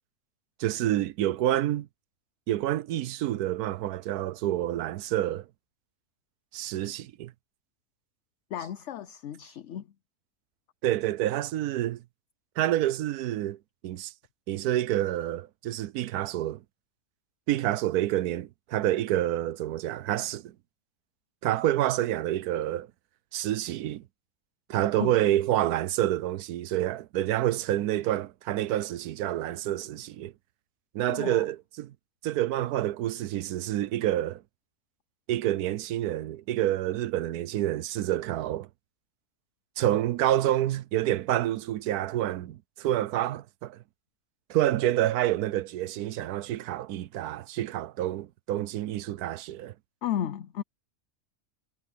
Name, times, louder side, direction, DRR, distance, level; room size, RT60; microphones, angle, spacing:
voice 1, 0.6-1.9 2.5-5.4 6.5-7.3 10.8-12.0 12.6-13.6 13.8-14.1 14.5-16.6 17.5-20.5 21.4-22.9 23.3-24.0 24.7-30.3 30.9-31.9 32.2-34.4 35.3-38.7 39.8-43.8 44.5-49.7, right 13 dB, 85° right, 1.2 m, -28 dB
voice 2, 8.5-9.9 25.0-25.2 31.1-31.5 50.0-50.6, left 10 dB, 60° left, 0.9 m, -34 dB
omnidirectional pair, 1.6 m